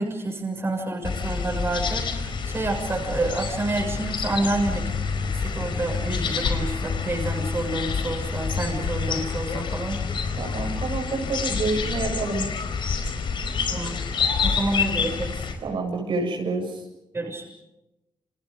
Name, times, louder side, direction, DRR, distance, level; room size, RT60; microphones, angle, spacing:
voice 1, 0.0-5.0 5.2-10.0 13.7-14.0 14.4-15.4 17.1-17.5, right 2 dB, 30° right, 2 dB, 6.9 m, -29 dB
sound 1, 1.0-15.5, left 5 dB, 65° left, 4.7 m, -28 dB
voice 2, 10.4-12.5 15.6-16.8, right 3 dB, 70° right, 2 dB, 7.7 m, -28 dB
29.5 x 28.5 x 5.3 m, 0.94 s
wide cardioid pair, 135°, 9 cm